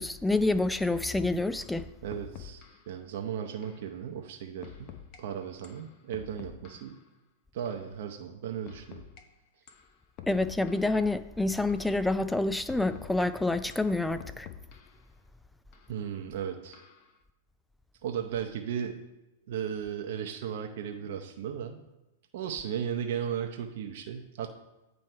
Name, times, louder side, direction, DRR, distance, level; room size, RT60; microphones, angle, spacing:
voice 1, 0.0-1.9 10.3-14.5, left 2 dB, 5° left, 12 dB, 0.3 m, -28 dB
sound 1, 1.1-1.2 1.6-1.8 2.1-2.9 3.6-3.8 4.6-5.2 5.6-7.0 7.7-7.8 8.7-9.2 9.7-9.9 10.2-11.0 11.7-11.9 12.7-13.3 13.7-15.0 15.7-15.9 16.7-17.1, left 9 dB, 45° left, 0.7 m, -48 dB
voice 2, 2.0-7.0 7.5-9.0 15.9-16.8 18.0-19.0 19.5-21.8 22.3-24.6, right 8 dB, 65° right, 4 dB, 0.6 m, -36 dB
9.1 x 3.1 x 4.5 m, 1.0 s
hypercardioid pair, 120°, 0 cm